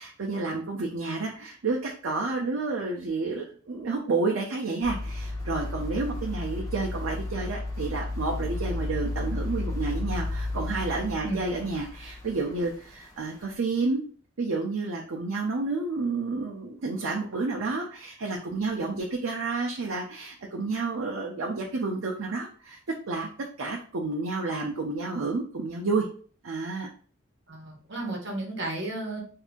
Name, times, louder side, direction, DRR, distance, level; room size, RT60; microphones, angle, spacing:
voice 1, 0.0-14.0 14.4-22.8 23.1-23.3 23.6-26.1 26.4-26.9, right 3 dB, 80° right, -1 dB, 0.6 m, -30 dB
sound 1, 4.8-13.1 13.5-13.6, left 2 dB, 15° left, 0.8 m, -33 dB
voice 2, 27.5-29.2, right 2 dB, 60° right, -1 dB, 1.0 m, -33 dB
2.7 x 2.5 x 3.5 m, 0.43 s
head